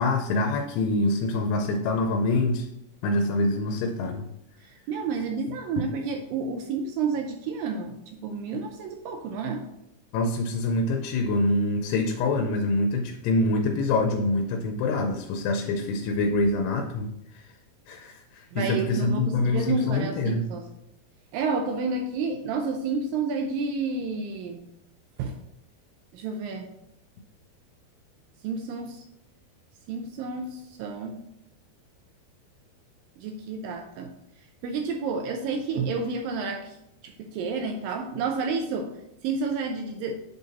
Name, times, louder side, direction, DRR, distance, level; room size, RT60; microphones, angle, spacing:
voice 1, 0.0-2.7 3.0-4.3 10.1-17.5 17.9-20.4, left 2 dB, 90° left, 4 dB, 2.7 m, -25 dB
voice 2, 4.6-8.0 8.2-9.6 18.5-20.7 21.3-24.6 25.2-25.4 26.1-26.7 28.4-29.0 29.9-31.2 33.2-34.1 34.6-36.8 37.0-38.9 39.2-40.2, right 4 dB, 85° right, 4 dB, 2.0 m, -30 dB
7.6 x 3.9 x 4.0 m, 0.82 s
omnidirectional pair, 4.6 m